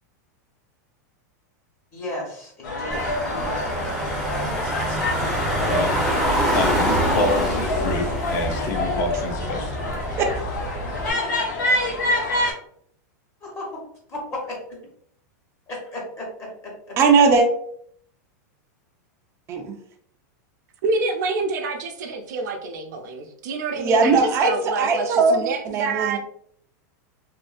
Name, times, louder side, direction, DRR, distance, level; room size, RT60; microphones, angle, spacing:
voice 1, 1.9-4.6 13.4-13.8 14.1-14.6 15.7-17.0, left 1 dB, 30° left, -2 dB, 1.1 m, -35 dB
sound 1, 2.6-12.5, left 2 dB, 85° left, 0.9 m, -27 dB
Car / Engine, 2.9-11.1, right 1 dB, 5° left, 0.7 m, -26 dB
voice 2, 5.6-6.0 6.5-9.9, left 2 dB, 60° left, 5 dB, 0.5 m, -27 dB
voice 3, 17.0-17.5 19.5-19.7 23.8-26.2, right 4 dB, 30° right, 3 dB, 0.4 m, -19 dB
voice 4, 20.8-26.2, right 3 dB, 75° right, 5 dB, 0.6 m, -27 dB
2.7 x 2.5 x 2.4 m, 0.65 s
supercardioid pair, 140°, 10 cm